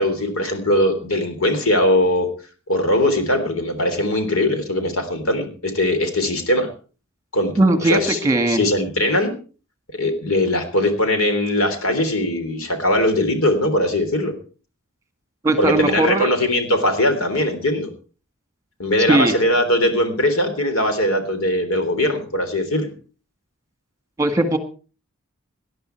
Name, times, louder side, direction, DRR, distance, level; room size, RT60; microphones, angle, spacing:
voice 1, 0.0-2.3 2.7-6.7 7.3-7.5 7.8-8.2 8.5-9.3 9.9-14.3 15.6-17.9 18.8-22.9, left 1 dB, 85° left, 7 dB, 3.5 m, -20 dB
voice 2, 7.6-8.6 15.4-16.3 19.1-19.4 24.2-24.6, right 2 dB, 15° right, 8 dB, 1.7 m, -18 dB
18.5 x 11.0 x 4.6 m, 0.38 s
head